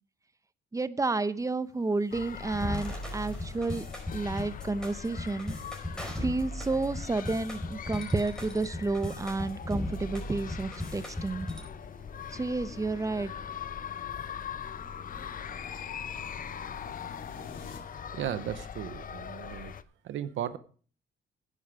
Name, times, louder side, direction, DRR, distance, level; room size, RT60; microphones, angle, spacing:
voice 1, 0.7-3.8 4.1-5.5 6.2-11.5 12.3-13.3, right 3 dB, 15° right, 14 dB, 0.8 m, -31 dB
sound 1, 2.0-17.8, left 6 dB, 80° left, 2.4 m, -51 dB
sound 2, 2.1-19.8, left 8 dB, 45° left, 0.7 m, -42 dB
sound 3, 2.5-11.6, left 1 dB, 5° left, 4.6 m, -37 dB
voice 2, 18.1-19.7 20.0-20.6, right 10 dB, 75° right, 12 dB, 0.9 m, -35 dB
10.0 x 10.0 x 4.9 m, 0.42 s
cardioid pair, 90°, 20 cm